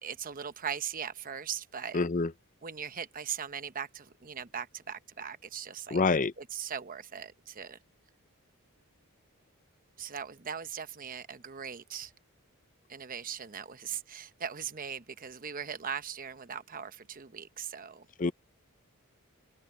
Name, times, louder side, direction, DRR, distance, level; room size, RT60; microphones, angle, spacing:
voice 1, 0.0-2.0 2.6-6.0 6.4-7.8 10.0-12.1 12.9-18.1, right 7 dB, 40° right, 0.9 m, -39 dB
voice 2, 1.9-2.3 5.9-6.3 18.2-18.3, left 4 dB, 35° left, 0.6 m, -26 dB
head